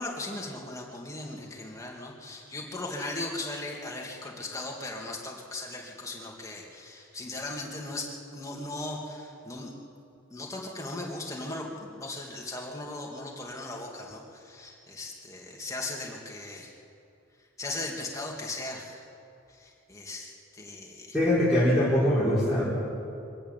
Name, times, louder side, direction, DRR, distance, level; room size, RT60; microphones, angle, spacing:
voice 1, 0.0-9.7 10.3-16.7 17.6-19.0 19.5-21.2, left 2 dB, 15° left, -1 dB, 2.5 m, -38 dB
voice 2, 21.1-22.6, left 1 dB, ahead, -10 dB, 4.4 m, -22 dB
24.0 x 12.5 x 9.1 m, 2.6 s
head